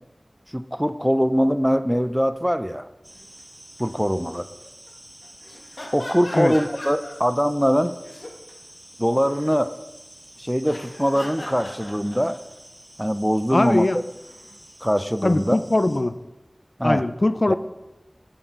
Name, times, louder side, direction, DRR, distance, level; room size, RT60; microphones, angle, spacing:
voice 1, 0.5-2.8 3.8-4.5 5.9-8.0 9.0-9.7 10.4-12.3 13.0-13.9 14.8-15.6 16.8-17.0 17.5-17.6, equal, ahead, 12 dB, 0.5 m, -22 dB
sound 1, 3.0-16.0, equal, 20° right, 2.5 m, -48 dB
sound 2, 3.1-3.4 3.8-4.0 4.3-4.9 5.2-7.3 7.8-8.5 8.9-9.6 10.6-12.6 13.9-14.6, left 1 dB, 75° left, 1.6 m, -40 dB
voice 2, 13.5-14.0 15.2-16.2 16.8-17.5, left 2 dB, 55° left, 12 dB, 0.5 m, -21 dB
8.9 x 7.8 x 4.6 m, 0.99 s
wide cardioid pair, 45°, 0 cm